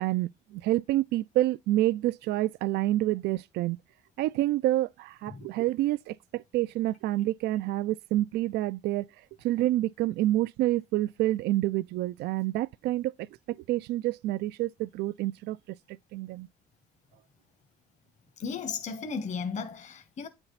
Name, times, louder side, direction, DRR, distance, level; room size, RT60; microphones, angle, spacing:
voice 1, 0.0-3.8 4.2-9.1 9.4-13.1 13.5-15.6 16.1-16.5, right 15 dB, 75° right, 0.4 m, -28 dB
voice 2, 18.4-20.3, left 5 dB, 45° left, 1.2 m, -35 dB
8.9 x 4.4 x 4.0 m
cardioid pair, 110°, 17 cm